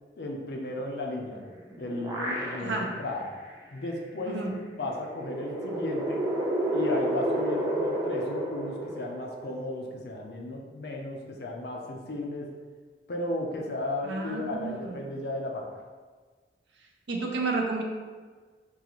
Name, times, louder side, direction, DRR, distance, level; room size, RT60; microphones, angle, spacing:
voice 1, 0.2-1.4 1.8-3.3 3.7-4.4 4.7-6.3 6.7-12.5 13.1-15.7, left 2 dB, 65° left, 1 dB, 0.5 m, -34 dB
sound 1, 1.4-3.0 3.5-3.6 4.9-9.6, right 1 dB, 20° right, 0.5 m, -31 dB
voice 2, 2.6-2.9 4.3-4.5 14.0-15.0 17.1-17.8, right 3 dB, 85° right, 0 dB, 0.6 m, -31 dB
3.8 x 2.4 x 3.0 m, 1.4 s
head